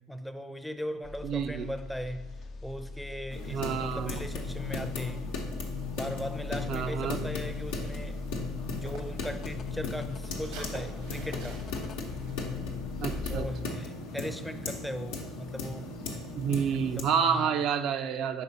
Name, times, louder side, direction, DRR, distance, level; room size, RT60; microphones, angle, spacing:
voice 1, 0.1-2.3 2.6-5.3 5.9-8.2 8.8-11.6 13.3-15.9 17.0-17.6, equal, 5° left, 9 dB, 0.5 m, -38 dB
sound 1, 1.0-13.5, left 5 dB, 50° left, 0.4 m, -39 dB
voice 2, 1.2-1.7 3.5-4.3 6.7-7.3 13.0-13.8 16.4-18.4, right 7 dB, 60° right, 8 dB, 0.4 m, -29 dB
sound 2, 3.3-17.0, left 2 dB, 85° left, 0.9 m, -38 dB
sound 3, 5.7-9.3 9.6-12.3, right 2 dB, 85° right, 1.1 m, -49 dB
5.1 x 3.9 x 5.3 m, 1.1 s
hypercardioid pair, 75°, 0 cm